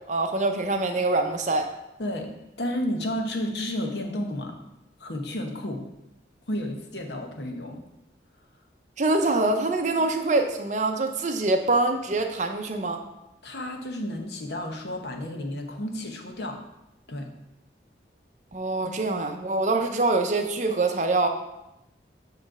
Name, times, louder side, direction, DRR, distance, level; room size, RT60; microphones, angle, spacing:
voice 1, 0.1-1.7 9.0-13.0 18.5-21.3, right 2 dB, 45° right, 5 dB, 0.7 m, -24 dB
voice 2, 2.6-4.6 5.0-5.9 6.5-7.8 13.4-16.6 17.1-17.3, left 1 dB, 70° left, 3 dB, 1.0 m, -31 dB
7.7 x 3.2 x 6.0 m, 0.89 s
head